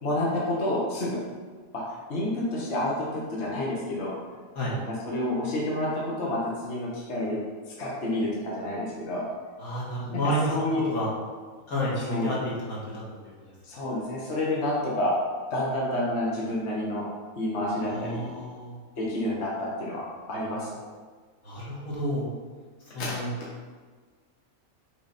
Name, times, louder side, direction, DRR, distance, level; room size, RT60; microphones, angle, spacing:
voice 1, 0.0-1.2 1.7-1.8 2.1-4.1 4.7-7.4 7.8-9.3 10.1-10.8 12.1-12.3 13.6-15.1 15.5-17.0 17.4-18.2 19.0-20.7 23.0-23.1, left 1 dB, 50° left, -5 dB, 1.5 m, -29 dB
voice 2, 9.6-11.1 11.7-13.0 17.8-18.8 21.4-22.3 22.9-23.3, equal, 80° left, -6 dB, 2.3 m, -30 dB
6.2 x 5.0 x 4.2 m, 1.5 s
omnidirectional pair, 1.5 m